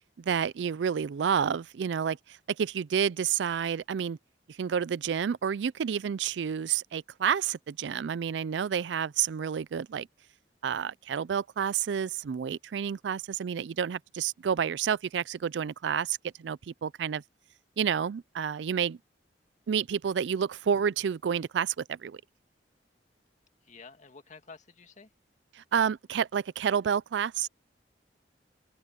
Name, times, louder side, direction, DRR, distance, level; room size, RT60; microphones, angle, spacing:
voice 1, 0.3-2.2 2.6-4.2 4.6-10.1 10.6-17.2 17.8-19.0 19.7-22.2 25.5-27.5, right 7 dB, 75° right, 0.4 m, -29 dB
voice 2, 23.6-25.1, left 4 dB, 45° left, 2.0 m, -50 dB
open air
head